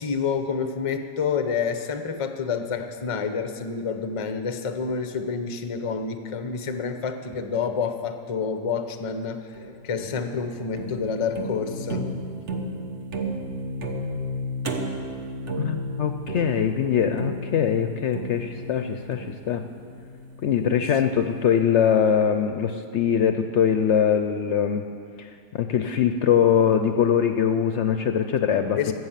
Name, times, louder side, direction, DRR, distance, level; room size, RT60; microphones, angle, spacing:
voice 1, 0.0-12.1 28.8-28.9, left 5 dB, 35° left, 8 dB, 0.5 m, -28 dB
sound 1, 9.5-20.7, equal, 55° right, 1.3 m, -33 dB
voice 2, 15.6-19.7 20.4-24.8 25.2-28.8, left 8 dB, 65° left, 7 dB, 0.8 m, -22 dB
13.5 x 8.0 x 7.3 m, 2.3 s
omnidirectional pair, 1.5 m